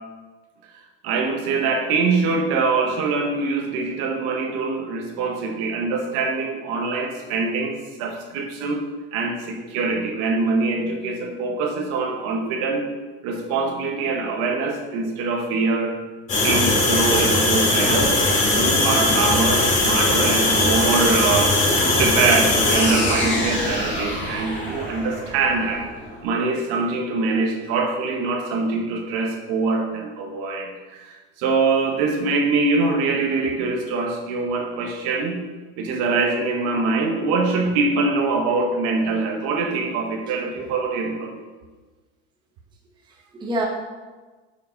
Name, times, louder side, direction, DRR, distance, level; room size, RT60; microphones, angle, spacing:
voice 1, 1.0-8.8 9.1-12.9 13.2-16.0 16.4-18.2 18.5-21.6 22.0-25.9 26.2-35.4 35.8-41.4, right 3 dB, 50° right, 2 dB, 1.2 m, -23 dB
sound 1, 16.3-26.1, left 2 dB, 25° left, 1.9 m, -20 dB
voice 2, 40.3-40.6 43.1-43.6, right 1 dB, 15° right, -2 dB, 0.9 m, -29 dB
7.0 x 5.1 x 5.2 m, 1.3 s
cardioid pair, 165°, 29 cm